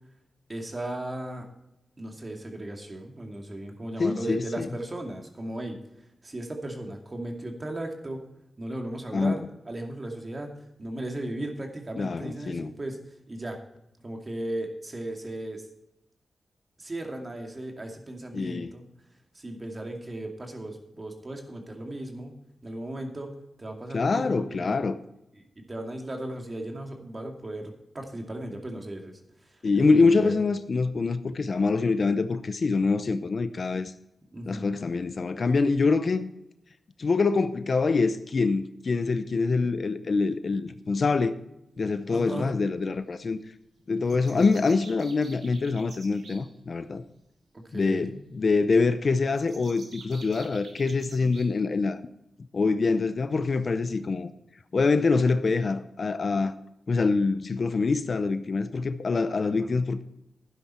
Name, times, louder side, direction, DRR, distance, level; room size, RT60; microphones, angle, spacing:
voice 1, 0.5-1.5 2.0-5.8 6.2-8.2 8.6-13.0 13.3-13.6 14.0-15.6 16.8-18.8 19.3-24.8 25.4-30.3 34.3-34.8 42.1-42.5 44.1-44.5 47.5-48.2 59.4-59.7, right 1 dB, 30° right, 2.4 m, -36 dB
voice 2, 4.0-4.7 9.1-9.4 12.0-12.7 18.3-18.7 23.9-24.9 29.6-33.9 34.5-36.3 37.0-41.4 41.8-43.4 43.9-47.0 47.7-52.0 52.5-54.3 54.7-56.5 56.9-60.0, left 4 dB, 55° left, 0.7 m, -25 dB
sound 1, 44.0-46.4 49.3-51.5, right 3 dB, 85° right, 3.3 m, -48 dB
12.0 x 10.5 x 4.4 m
wide cardioid pair, 90°, 0 cm